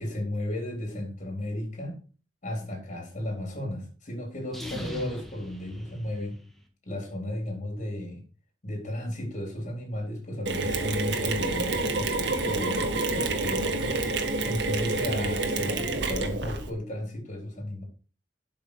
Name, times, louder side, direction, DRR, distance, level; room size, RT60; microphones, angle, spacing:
voice 1, 0.0-2.0 2.4-6.4 6.8-8.2 8.6-13.8 14.0-17.8, left 1 dB, 45° left, 1 dB, 3.9 m, -34 dB
sound 1, 4.4-6.6, left 1 dB, ahead, 1.9 m, -39 dB
Mechanisms, 10.5-16.7, right 2 dB, 75° right, 1.8 m, -28 dB
12.5 x 6.1 x 4.8 m, 0.37 s
head